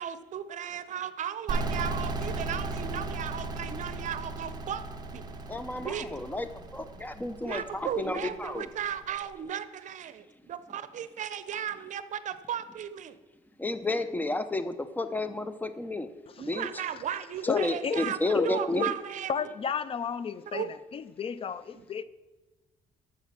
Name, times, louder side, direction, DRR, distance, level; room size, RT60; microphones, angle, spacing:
voice 1, 0.0-4.8 5.1-5.3 5.8-6.1 7.4-13.1 16.4-19.5 20.5-20.7 21.8-21.9, right 9 dB, 60° right, 0.8 m, -35 dB
sound 1, 1.5-9.0, right 2 dB, 30° right, 1.2 m, -36 dB
voice 2, 5.5-8.6 13.6-16.1 16.4-16.7 17.5-18.9, left 2 dB, 10° left, 0.8 m, -31 dB
voice 3, 17.5-18.5 18.7-18.9 19.3-22.0, left 6 dB, 40° left, 0.5 m, -33 dB
12.5 x 7.2 x 5.9 m
cardioid pair, 110°, 14 cm